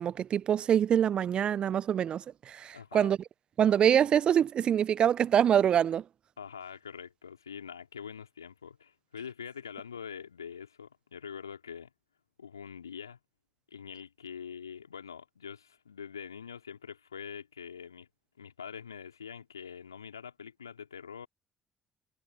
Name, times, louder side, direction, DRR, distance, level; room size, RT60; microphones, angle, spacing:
voice 1, 0.0-3.2 3.6-6.0, right 9 dB, 50° right, 0.9 m, -25 dB
voice 2, 2.7-3.1 6.4-11.9 12.4-13.2 13.7-18.1 18.4-21.3, left 7 dB, 85° left, 3.2 m, -44 dB
figure-of-eight pair, 45°, 2 cm